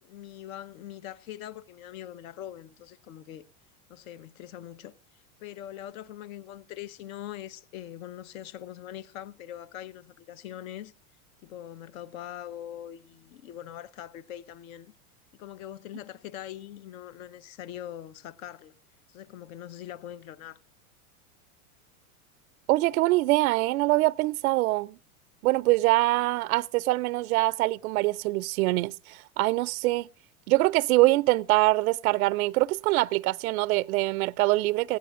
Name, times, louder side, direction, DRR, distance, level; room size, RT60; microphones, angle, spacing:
voice 1, 0.0-3.4 3.9-10.9 11.4-14.9 15.3-18.8 19.1-20.6, left 12 dB, 70° left, 1.1 m, -42 dB
voice 2, 22.7-24.9 25.4-30.1 30.5-35.0, right 20 dB, 80° right, 0.5 m, -24 dB
18.0 x 16.0 x 2.5 m
supercardioid pair, 140°, 43 cm